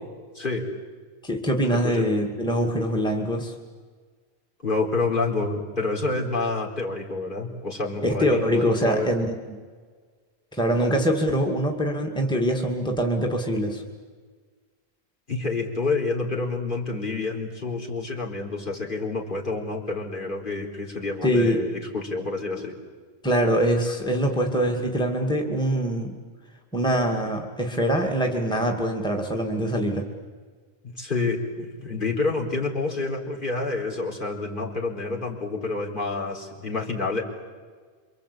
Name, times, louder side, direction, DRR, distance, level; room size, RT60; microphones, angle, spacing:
voice 1, 0.3-0.7 1.7-2.1 4.6-9.1 15.3-22.7 30.8-37.2, left 3 dB, 50° left, -1 dB, 4.3 m, -28 dB
voice 2, 1.2-3.5 8.0-9.6 10.5-13.8 21.2-21.6 23.2-26.1 26.7-30.0, equal, 5° left, 1 dB, 2.3 m, -24 dB
27.5 x 24.5 x 8.6 m, 1.5 s
omnidirectional pair, 1.1 m